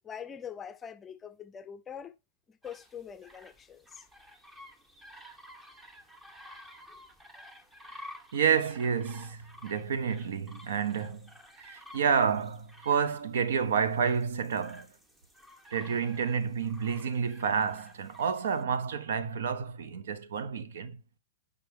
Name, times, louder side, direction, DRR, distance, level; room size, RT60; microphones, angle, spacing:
voice 1, 0.0-2.1 2.5-4.0 6.9-7.0, left 8 dB, 20° left, 0.5 m, -44 dB
sound 1, 2.6-18.6, left 1 dB, 10° right, 0.8 m, -52 dB
voice 2, 8.3-11.3 11.6-14.9 15.7-21.0, right 6 dB, 80° right, 0.7 m, -29 dB
5.1 x 3.4 x 5.5 m
hypercardioid pair, 135°, 0 cm